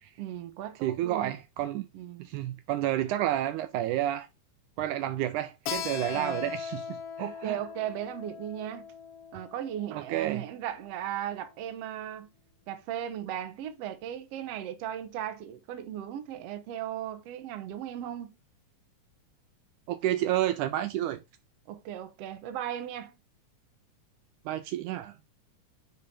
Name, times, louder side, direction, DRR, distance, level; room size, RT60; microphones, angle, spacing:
voice 1, 0.2-1.4 1.9-2.3 6.1-6.5 7.2-8.9 9.3-12.3 12.7-18.3 21.7-23.2, right 11 dB, 65° right, 1.8 m, -37 dB
voice 2, 0.8-1.9 2.3-4.3 4.8-7.6 9.9-10.4 19.9-21.2 24.5-25.2, right 13 dB, 80° right, 2.0 m, -30 dB
Keyboard (musical), 5.7-10.9, left 7 dB, 70° left, 1.5 m, -39 dB
9.6 x 3.8 x 4.3 m
omnidirectional pair, 3.7 m